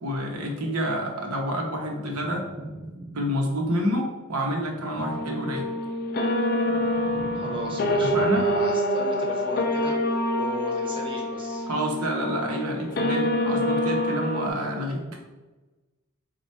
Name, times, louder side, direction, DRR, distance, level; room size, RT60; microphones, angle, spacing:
voice 1, 0.0-2.4 3.1-5.7 8.0-8.4 11.7-15.0, equal, 85° right, 1 dB, 0.9 m, -28 dB
sound 1, 2.0-3.6 4.5-6.0 6.4-8.8, right 1 dB, 15° left, 0.7 m, -41 dB
sound 2, 5.0-14.5, left 1 dB, 45° left, 0.4 m, -26 dB
voice 2, 7.3-11.6, right 1 dB, 25° right, -1 dB, 0.8 m, -36 dB
4.2 x 2.4 x 4.5 m, 1.2 s
head